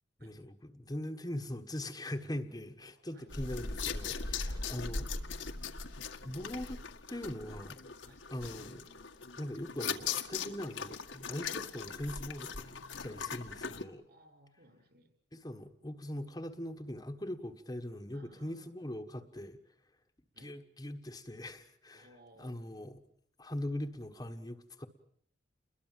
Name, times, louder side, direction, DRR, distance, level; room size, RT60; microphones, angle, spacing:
voice 1, 0.2-5.0 6.2-7.8 8.3-8.9 9.4-14.0 15.3-19.6 20.4-22.1 22.4-23.0 23.4-24.9, left 1 dB, 20° left, 5 dB, 1.4 m, -41 dB
voice 2, 2.8-3.3 4.3-4.6 8.0-8.2 14.1-15.1 18.1-18.7 20.3-20.5 21.9-22.6, right 1 dB, 55° right, 6 dB, 6.6 m, -61 dB
sound 1, 3.3-13.8, left 5 dB, 80° left, 1.9 m, -40 dB
29.5 x 22.0 x 7.6 m, 0.64 s
head